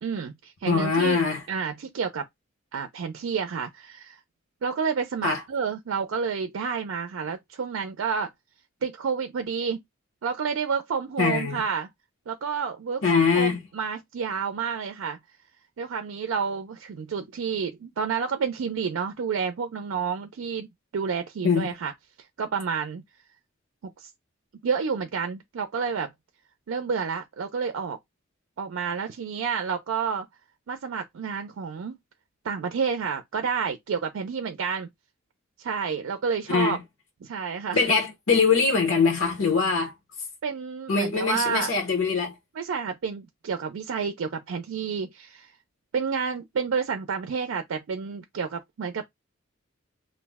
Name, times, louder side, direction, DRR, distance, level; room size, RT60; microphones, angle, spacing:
voice 1, 0.0-1.2 1.5-2.3 2.7-4.2 4.6-8.3 8.8-9.8 10.2-11.9 12.3-15.2 15.8-20.7 20.9-21.9 22.4-23.0 24.0-24.1 24.6-26.1 26.7-28.0 28.6-30.3 30.7-32.0 32.4-34.9 35.6-36.8 37.2-37.8 40.4-41.7 42.5-45.5 45.9-49.0, right 6 dB, 90° right, 0.4 m, -29 dB
voice 2, 0.6-1.4 5.2-5.4 11.2-11.6 13.0-13.6 21.4-21.7 36.5-36.8 37.7-39.9 40.9-42.3, left 5 dB, 75° left, 0.9 m, -22 dB
2.5 x 2.0 x 3.3 m
head